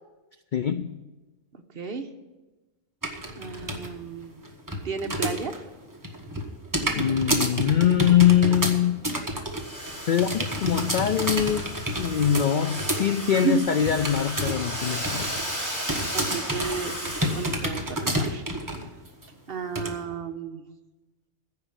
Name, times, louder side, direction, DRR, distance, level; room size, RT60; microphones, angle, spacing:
voice 1, 0.5-0.9 7.0-9.0 10.1-11.7 12.0-15.6, left 9 dB, 80° left, 11 dB, 0.4 m, -23 dB
voice 2, 1.7-2.1 3.4-4.4 4.8-5.6 16.1-18.4 19.5-20.6, right 5 dB, 50° right, 6 dB, 1.0 m, -34 dB
sound 1, 3.0-3.9 4.2-5.6 5.9-14.7 14.9-15.5 15.9-18.9 19.2-19.3 19.8-19.9, right 1 dB, 15° right, 1.2 m, -29 dB
Domestic sounds home sounds, 9.5-17.7, equal, 15° left, 3.4 m, -35 dB
15.0 x 5.2 x 9.0 m, 1.1 s
omnidirectional pair, 1.4 m